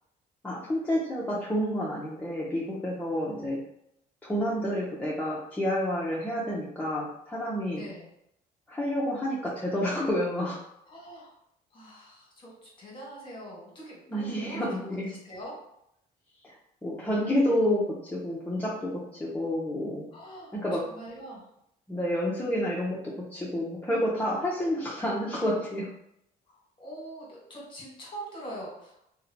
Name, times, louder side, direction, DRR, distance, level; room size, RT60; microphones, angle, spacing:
voice 1, 0.4-3.6 4.2-7.9 8.7-10.6 14.1-15.1 16.4-16.5 16.8-20.1 20.5-20.9 21.9-25.9, equal, 10° left, -6 dB, 0.5 m, -29 dB
voice 2, 7.8-8.1 10.9-11.3 11.7-14.8 15.1-15.5 16.9-17.4 20.1-20.5 20.8-21.4 26.5-29.1, right 1 dB, 30° left, -4 dB, 1.2 m, -44 dB
2.7 x 2.1 x 2.6 m, 0.78 s
cardioid pair, 110°, 17 cm